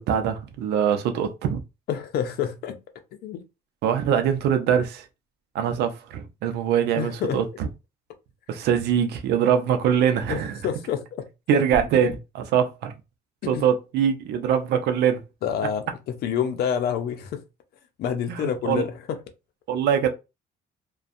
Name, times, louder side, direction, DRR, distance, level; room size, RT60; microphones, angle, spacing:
voice 1, 0.0-1.6 3.8-5.1 5.5-7.7 8.5-10.6 11.5-12.9 13.5-15.2 18.3-18.8 19.7-20.1, right 8 dB, 75° right, 0.6 m, -23 dB
voice 2, 1.9-2.8 3.2-3.4 7.0-7.4 10.3-11.0 13.4-13.6 15.4-17.4 18.0-19.2, left 8 dB, 70° left, 0.6 m, -27 dB
sound 1, 11.7-12.2, left 1 dB, 15° left, 0.7 m, -36 dB
2.5 x 2.2 x 2.4 m
cardioid pair, 110°, 17 cm